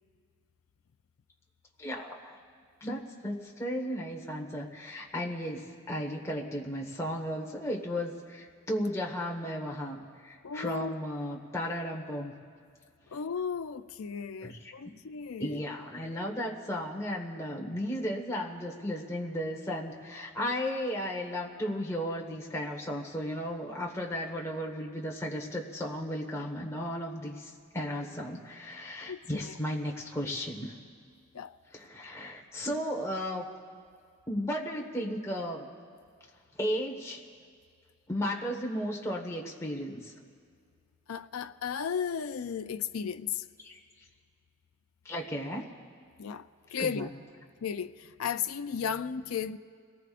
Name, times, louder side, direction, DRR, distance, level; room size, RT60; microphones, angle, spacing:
voice 1, 1.8-2.4 2.8-12.3 14.4-14.7 15.4-30.7 31.7-33.5 34.3-35.7 36.6-37.2 38.1-40.1 43.6-43.8 45.0-45.7 46.8-47.1, equal, 15° left, 1.5 m, -35 dB
voice 2, 10.4-10.9 13.1-15.6 29.1-29.5 31.3-31.6 41.1-43.4 46.2-47.1 47.6-49.6, left 7 dB, 85° left, 0.5 m, -35 dB
29.5 x 19.0 x 2.5 m
head